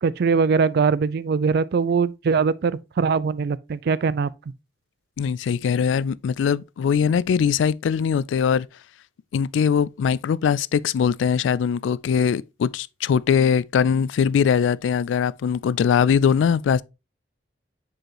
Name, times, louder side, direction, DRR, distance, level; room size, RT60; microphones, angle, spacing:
voice 1, 0.0-4.3, right 5 dB, 60° right, 0.4 m, -21 dB
voice 2, 5.2-8.7 9.3-16.8, left 7 dB, 85° left, 0.3 m, -21 dB
7.5 x 4.8 x 2.9 m
head